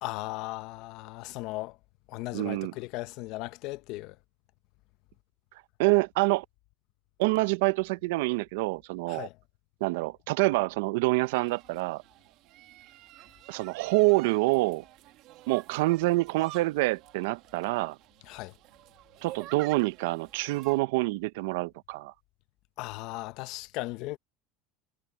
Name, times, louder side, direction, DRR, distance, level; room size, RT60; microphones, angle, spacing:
voice 1, 0.0-1.8 2.1-4.2 9.1-9.3 18.3-18.5 22.8-24.2, left 19 dB, 45° left, 0.7 m, -37 dB
voice 2, 2.3-2.7 5.8-6.4 7.2-9.3 9.8-12.0 13.5-14.8 15.5-18.0 19.2-22.1, right 22 dB, 65° right, 0.5 m, -26 dB
sound 1, 11.2-20.8, right 16 dB, 40° right, 1.5 m, -50 dB
cardioid pair, 180°, 0 cm